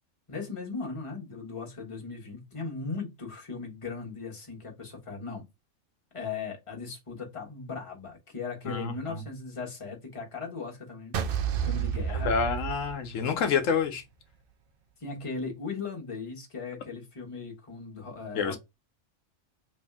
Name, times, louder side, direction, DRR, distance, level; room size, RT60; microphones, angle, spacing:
voice 1, 0.3-5.5 6.1-11.1 11.6-12.4 15.0-18.6, left 4 dB, 25° left, 1.2 m, -38 dB
voice 2, 8.7-9.2 12.1-14.0 18.3-18.6, left 6 dB, 80° left, 1.0 m, -28 dB
sound 1, 11.1-13.5, right 8 dB, 60° right, 0.6 m, -30 dB
3.2 x 2.6 x 3.3 m
omnidirectional pair, 1.3 m